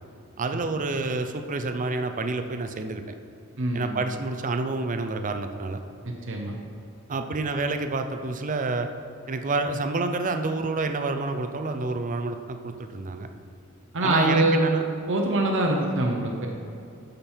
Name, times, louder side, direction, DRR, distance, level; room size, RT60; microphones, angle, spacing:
voice 1, 0.4-3.0 3.7-5.8 7.1-8.9 9.3-13.3 14.0-14.8, right 3 dB, 40° right, 7 dB, 0.6 m, -28 dB
voice 2, 3.6-4.0 6.0-6.6 13.9-14.6 15.1-16.5, right 2 dB, 60° right, 0 dB, 0.9 m, -24 dB
12.5 x 5.3 x 4.4 m, 2.7 s
head